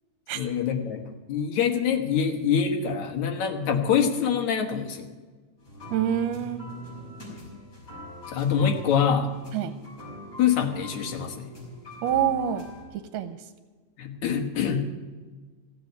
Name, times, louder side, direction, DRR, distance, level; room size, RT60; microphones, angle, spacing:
voice 1, 0.4-5.1 8.3-9.3 10.4-11.5 14.0-14.9, left 7 dB, 65° left, 4 dB, 2.6 m, -25 dB
sound 1, 5.6-12.8, equal, 30° left, 6.2 m, -42 dB
voice 2, 5.9-6.7 9.5-9.7 12.0-12.7 12.9-13.4, right 9 dB, 85° right, 10 dB, 2.3 m, -26 dB
16.0 x 7.7 x 9.5 m, 1.4 s
omnidirectional pair, 3.8 m